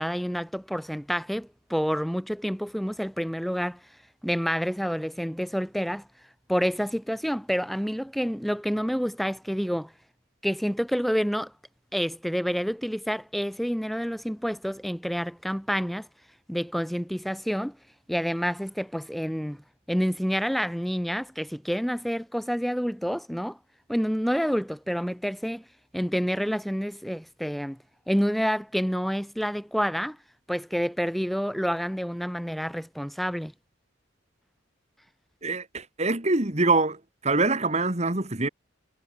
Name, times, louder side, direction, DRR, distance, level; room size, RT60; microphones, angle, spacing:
voice 1, 0.0-3.8 4.2-6.1 6.5-9.9 10.4-11.5 11.9-16.1 16.5-17.8 18.1-19.6 19.9-23.6 23.9-25.6 25.9-27.8 28.1-30.2 30.5-33.5, equal, ahead, 2.0 m, -28 dB
voice 2, 35.4-37.0 37.2-38.5, right 3 dB, 35° right, 2.2 m, -24 dB
head